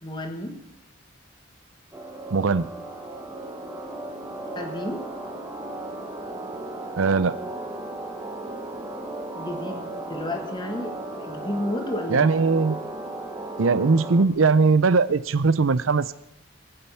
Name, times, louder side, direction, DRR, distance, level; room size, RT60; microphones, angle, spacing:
voice 1, 0.0-0.6 4.6-5.1 9.4-12.3, left 1 dB, 20° left, 4 dB, 1.7 m, -32 dB
sound 1, 1.9-14.2, right 2 dB, 15° right, 1.3 m, -35 dB
voice 2, 2.3-2.7 7.0-7.4 12.1-12.8 13.6-16.1, right 4 dB, 80° right, 16 dB, 0.6 m, -20 dB
22.0 x 8.9 x 5.7 m, 0.75 s
head